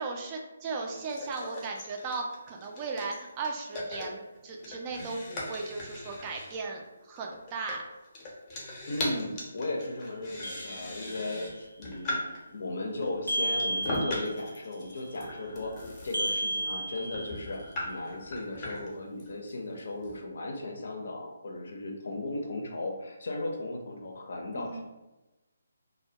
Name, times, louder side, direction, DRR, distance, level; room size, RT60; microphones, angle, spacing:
voice 1, 0.0-7.8 9.0-9.2 24.5-24.8, right 4 dB, 25° right, 1 dB, 0.4 m, -37 dB
sound 1, 0.8-12.5 13.0-20.2, left 1 dB, 20° left, 0.6 m, -39 dB
voice 2, 8.9-12.2 12.5-15.7 16.0-24.8, left 2 dB, 60° left, 1 dB, 0.5 m, -36 dB
sound 2, 10.4-11.4 13.3-14.5 16.1-17.6, right 1 dB, 85° right, 0.7 m, -33 dB
2.1 x 2.1 x 2.7 m, 1.0 s
figure-of-eight pair, 150°, 0 cm